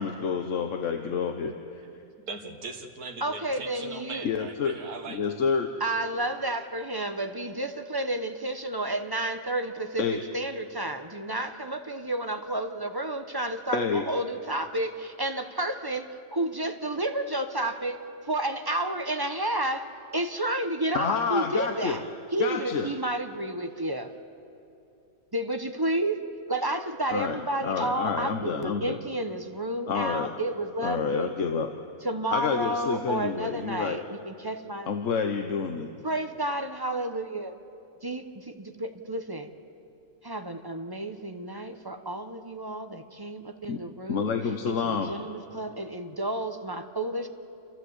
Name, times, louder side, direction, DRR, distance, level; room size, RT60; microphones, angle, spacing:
voice 1, 0.0-1.5 4.2-4.7 5.1-5.7 10.0-10.2 13.7-14.0 20.9-22.0 22.4-22.9 27.1-29.0 29.9-30.3 30.8-31.7 32.3-34.0 34.9-35.9 43.7-43.8 44.1-45.1, left 6 dB, 60° left, 5 dB, 1.2 m, -28 dB
voice 2, 2.3-5.2, right 4 dB, 90° right, 3 dB, 1.9 m, -39 dB
voice 3, 3.2-4.3 5.8-22.0 22.3-24.1 25.3-31.3 32.0-34.9 36.0-37.5 38.0-39.5 40.2-44.3 44.6-44.8 45.1-47.3, right 1 dB, 20° right, 6 dB, 0.7 m, -31 dB
29.0 x 14.0 x 8.1 m, 2.6 s
omnidirectional pair, 1.6 m